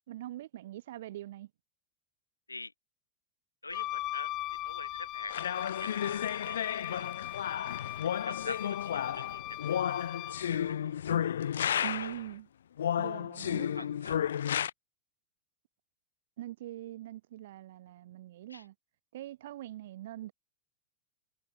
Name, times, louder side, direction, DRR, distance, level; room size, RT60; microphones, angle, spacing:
voice 1, 0.1-1.5 11.8-12.5 13.0-13.9 16.4-18.7 19.1-20.3, right 14 dB, 55° right, 0.9 m, -43 dB
voice 2, 3.6-4.3 4.6-5.3 5.7-6.6 6.9-7.1 8.3-9.6 9.9-10.0 10.2-10.9 11.7-12.1 13.8-14.2 18.5-18.6, left 3 dB, 80° left, 0.8 m, -44 dB
Wind instrument woodwind instrument, 3.7-10.5, left 16 dB, 35° left, 0.7 m, -40 dB
sound 1, 5.3-12.3 12.8-14.7, left 9 dB, 65° left, 0.4 m, -32 dB
figure-of-eight pair, 90°, 0 cm